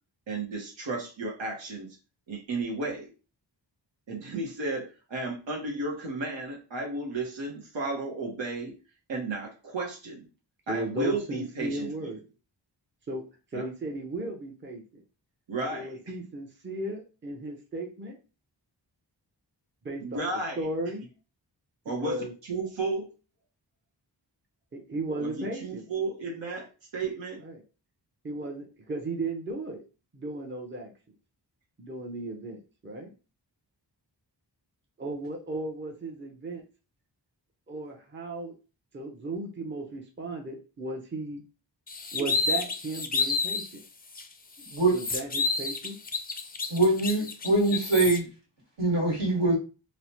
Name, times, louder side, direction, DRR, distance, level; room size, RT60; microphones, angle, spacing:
voice 1, 0.3-2.0 2.3-3.1 4.1-8.7 9.1-10.3 10.7-12.1 13.5-13.7 15.5-16.0 20.0-20.6 21.8-23.0 25.2-26.7 26.9-27.4, right 3 dB, 85° right, 0.8 m, -33 dB
voice 2, 10.7-12.2 13.1-13.2 13.5-15.0 15.7-18.2 19.8-20.2 20.6-21.0 21.9-22.3 24.7-25.8 27.4-27.6 28.2-29.8 30.1-30.9 31.8-33.1 35.0-36.6 37.7-38.5 38.9-41.4 42.1-43.8 44.9-46.0, right 2 dB, 25° right, 0.6 m, -35 dB
sound 1, 41.9-43.7 44.1-44.2 44.6-48.2, left 4 dB, 25° left, 0.3 m, -30 dB
voice 3, 46.7-48.3 48.8-49.6, right 2 dB, 70° right, 1.5 m, -23 dB
3.0 x 2.0 x 2.8 m
wide cardioid pair, 60°, 43 cm